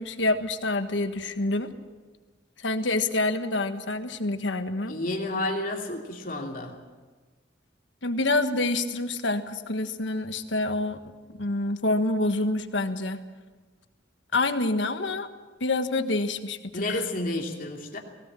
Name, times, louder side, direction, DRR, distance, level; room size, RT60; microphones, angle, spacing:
voice 1, 0.0-1.7 2.6-4.9 8.0-11.0 11.3-13.2 14.3-15.3 15.6-17.0, left 2 dB, 75° left, 8 dB, 1.4 m, -27 dB
voice 2, 4.9-6.8 16.7-18.0, left 2 dB, 45° left, 1 dB, 2.8 m, -30 dB
19.5 x 18.0 x 7.6 m, 1.4 s
head